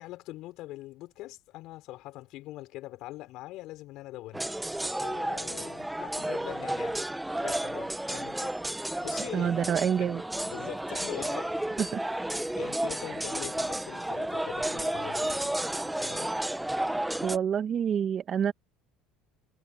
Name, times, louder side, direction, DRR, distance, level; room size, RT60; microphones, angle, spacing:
voice 1, 0.0-4.5 5.0-7.0 7.3-9.7 10.0-10.1 10.5-11.6 12.6-15.6 16.0-16.4, left 17 dB, 65° left, 5.5 m, -43 dB
sound 1, 4.3-17.4, right 1 dB, 5° right, 1.4 m, -32 dB
voice 2, 9.3-10.2 11.8-12.0 17.2-18.5, right 8 dB, 45° right, 1.9 m, -27 dB
supercardioid pair, 90°, 0 cm